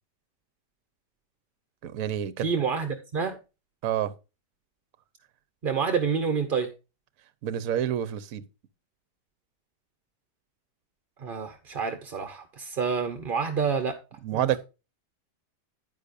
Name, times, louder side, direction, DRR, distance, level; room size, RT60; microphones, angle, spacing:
voice 1, 1.8-2.5 3.8-4.1 7.4-8.4 14.2-14.6, right 10 dB, 60° right, 1.1 m, -28 dB
voice 2, 2.4-3.4 5.6-6.7 11.2-14.0 14.3-14.5, right 6 dB, 40° right, 0.9 m, -28 dB
10.0 x 9.8 x 2.6 m
omnidirectional pair, 1.9 m